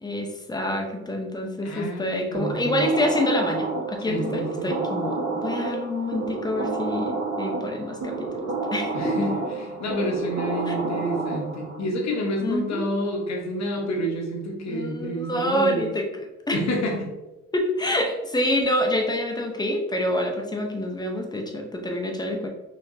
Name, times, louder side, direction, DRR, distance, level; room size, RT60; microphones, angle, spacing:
voice 1, 0.0-9.3 10.7-10.8 12.4-12.9 14.7-16.6 17.5-22.5, left 1 dB, 15° left, 2 dB, 0.7 m, -27 dB
voice 2, 1.6-2.9 4.0-4.7 8.9-15.9 16.5-17.1, equal, 60° left, 0 dB, 1.1 m, -29 dB
sound 1, 2.3-11.8, right 3 dB, 55° right, 1.2 m, -30 dB
4.4 x 2.9 x 2.6 m, 1.0 s
cardioid pair, 90°, 30 cm